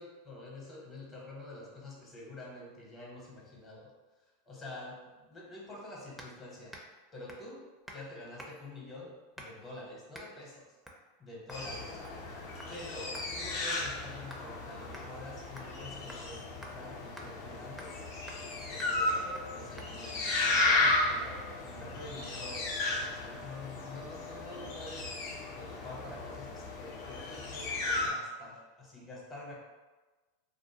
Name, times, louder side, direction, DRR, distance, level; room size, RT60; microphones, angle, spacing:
voice 1, 0.0-3.9 4.5-6.8 7.1-7.7 7.9-10.7 11.2-12.0 12.7-18.0 18.6-25.1 25.6-29.5, left 2 dB, 30° left, -3 dB, 0.8 m, -47 dB
sound 1, 6.2-6.4 6.7-7.0 7.3-7.5 7.9-8.1 8.4-8.7 9.4-9.7 10.1-10.3 10.8-11.0 11.5-11.7 12.0-12.3 12.6-12.7 13.1-14.5 14.9-15.1 15.6-15.8 16.1-16.2 16.6-16.7 17.2-17.3 17.8-18.0 18.3-18.5 18.8-19.0 19.3-19.5 19.8-19.9, equal, ahead, 0.4 m, -49 dB
sound 2, 11.5-28.1, left 2 dB, 60° left, 0.6 m, -34 dB
2.5 x 2.1 x 2.8 m, 1.2 s
hypercardioid pair, 105°, 0 cm